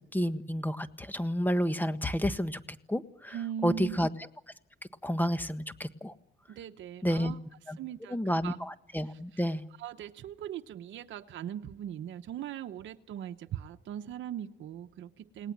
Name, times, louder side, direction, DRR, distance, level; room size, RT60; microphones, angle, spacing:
voice 1, 0.1-2.6 2.9-3.4 3.6-4.1 5.0-6.1 7.0-7.3 7.7-7.8 8.1-9.6, equal, 10° left, 10 dB, 1.5 m, -30 dB
voice 2, 3.3-4.0 6.5-7.4 7.8-8.6 9.0-9.5 9.8-15.5, right 10 dB, 70° right, 6 dB, 1.0 m, -40 dB
30.0 x 19.0 x 7.4 m, 0.75 s
cardioid pair, 90°, 20 cm